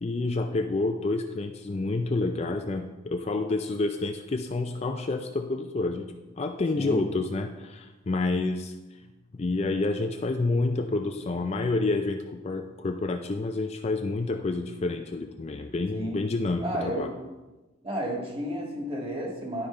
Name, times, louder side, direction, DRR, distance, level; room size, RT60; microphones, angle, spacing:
voice 1, 0.0-6.1 6.4-8.7 9.3-17.1, left 3 dB, 30° left, 5 dB, 0.4 m, -28 dB
voice 2, 15.9-16.2 16.6-17.1 17.8-19.7, equal, 25° right, -1 dB, 1.8 m, -32 dB
11.0 x 5.1 x 4.3 m, 1.1 s
head